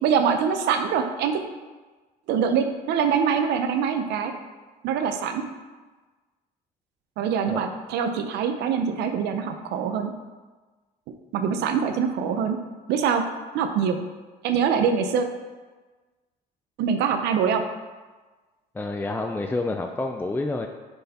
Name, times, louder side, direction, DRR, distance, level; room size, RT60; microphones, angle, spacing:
voice 1, 0.0-1.4 2.3-4.3 4.8-5.4 7.2-10.1 11.3-12.6 12.9-13.2 13.5-14.0 14.4-15.3 16.8-17.6, right 7 dB, 80° right, 6 dB, 0.7 m, -24 dB
voice 2, 18.7-20.7, left 2 dB, 10° left, 4 dB, 0.4 m, -28 dB
6.4 x 4.6 x 4.2 m, 1.3 s
cardioid pair, 110°, 17 cm